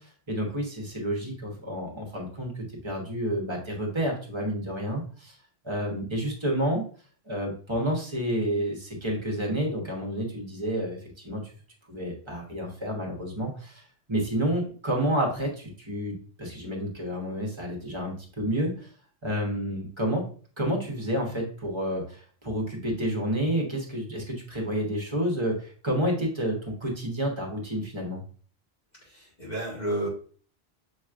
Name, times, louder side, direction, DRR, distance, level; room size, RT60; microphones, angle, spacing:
voice 1, 0.0-5.4 5.6-6.8 7.3-11.5 11.9-13.8 14.1-18.9 19.2-20.3 20.6-28.2, equal, 25° right, -1 dB, 1.2 m, -30 dB
voice 2, 29.0-30.1, right 1 dB, 40° left, -7 dB, 1.7 m, -31 dB
6.5 x 3.1 x 2.4 m, 0.43 s
omnidirectional pair, 1.1 m